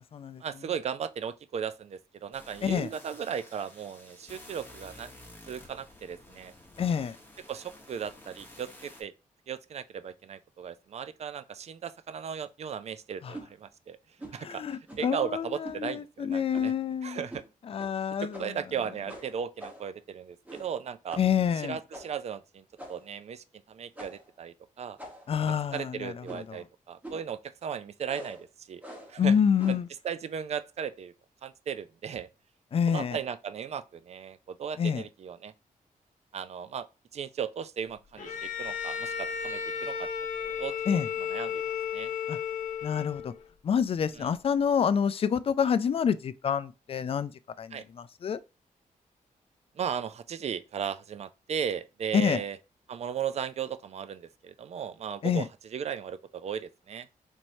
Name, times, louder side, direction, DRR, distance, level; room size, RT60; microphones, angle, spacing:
voice 1, 0.4-5.1 5.5-6.5 7.5-9.1 9.5-14.0 14.3-16.7 17.0-17.4 18.4-21.2 21.6-22.6 22.9-25.0 25.7-28.8 29.1-29.3 29.7-29.8 30.0-31.1 31.4-32.3 32.9-35.5 36.3-36.9 37.1-40.1 40.4-41.0 41.3-41.6 41.9-42.1 44.2-44.3 47.7-47.8 49.8-52.6 52.9-57.1, right 8 dB, 50° right, 0.4 m, -36 dB
sound 1, 2.3-9.0, left 1 dB, 15° left, 1.1 m, -51 dB
voice 2, 6.8-7.2 13.2-13.4 14.4-17.3 17.7-18.6 21.2-21.8 25.3-26.6 29.2-29.9 32.7-33.2 34.8-35.0 40.9-41.1 42.3-42.4 42.8-43.3 43.6-47.3 47.6-48.4 52.1-52.4 55.2-55.5, left 7 dB, 40° left, 0.3 m, -27 dB
sound 2, 13.3-13.5 14.2-14.4 14.9-15.2 15.6-15.8 16.5-16.8 17.3-17.5 17.8-17.9 18.3-18.7 19.1-19.9 20.4-20.8 21.1-21.3 21.9-22.2 22.8-23.2 23.9-24.3 25.0-25.4 26.2-26.6 27.0-27.3 28.1-28.4 28.8-29.2 29.6-29.9, right 1 dB, 10° right, 1.2 m, -45 dB
Bowed string instrument, 38.2-43.4, left 7 dB, 60° left, 0.9 m, -34 dB
4.4 x 3.1 x 2.6 m
wide cardioid pair, 120°, 14 cm